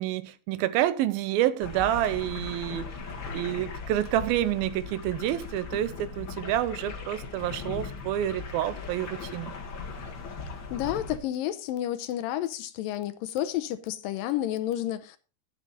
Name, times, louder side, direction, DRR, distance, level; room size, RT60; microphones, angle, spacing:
voice 1, 0.0-2.9 3.3-9.6, right 13 dB, 80° right, 2.6 m, -28 dB
sound 1, 1.6-11.2, left 4 dB, 40° left, 1.8 m, -38 dB
voice 2, 10.5-15.2, left 12 dB, 80° left, 2.2 m, -31 dB
11.0 x 9.3 x 4.1 m
omnidirectional pair, 4.3 m